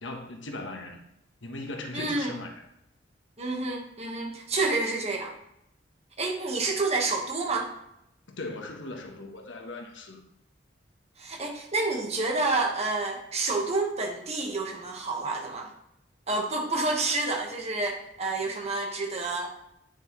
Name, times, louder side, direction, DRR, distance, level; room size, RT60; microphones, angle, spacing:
voice 1, 0.0-1.0 1.4-2.6 8.3-10.2, left 2 dB, 90° left, 3 dB, 1.2 m, -38 dB
voice 2, 1.9-2.3 3.4-5.3 6.2-7.7 11.2-15.7 16.3-19.5, right 3 dB, 35° right, 1 dB, 1.4 m, -29 dB
9.2 x 6.3 x 3.1 m, 0.79 s
head